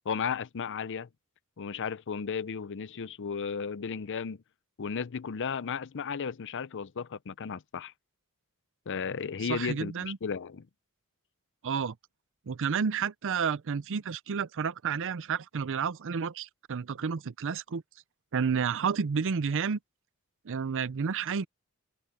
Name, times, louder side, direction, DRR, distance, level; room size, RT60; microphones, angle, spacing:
voice 1, 0.1-1.1 1.6-4.4 4.8-7.9 8.9-10.7, left 6 dB, 55° left, 0.6 m, -34 dB
voice 2, 9.4-10.2 11.6-12.0 12.5-17.8 18.3-19.8 20.4-21.5, right 6 dB, 60° right, 0.5 m, -30 dB
open air
head